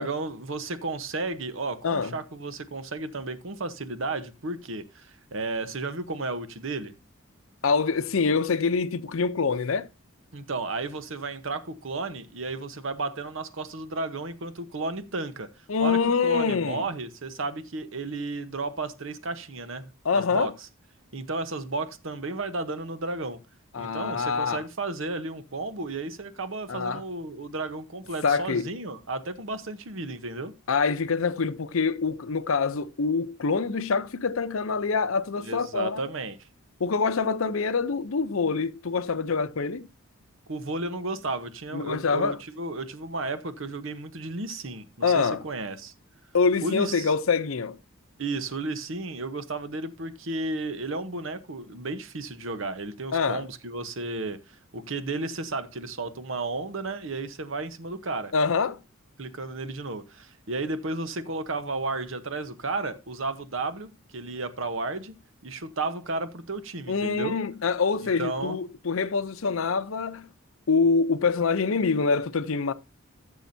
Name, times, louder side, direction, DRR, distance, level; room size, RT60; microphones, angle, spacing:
voice 1, 0.0-6.9 10.3-15.5 15.8-20.5 21.1-23.4 23.8-30.5 35.4-36.5 40.5-45.9 46.6-47.1 48.2-58.3 59.2-65.1 65.4-67.4 68.2-68.6, right 3 dB, 65° right, 1.0 m, -33 dB
voice 2, 1.8-2.2 7.6-9.9 15.7-16.9 20.0-20.5 23.7-24.6 26.7-27.0 28.2-28.7 30.7-36.0 36.8-39.9 41.7-42.4 45.0-45.4 46.3-47.8 53.1-53.4 58.3-58.8 66.9-70.3 70.7-72.7, left 5 dB, 75° left, 0.6 m, -25 dB
14.5 x 7.0 x 2.7 m
head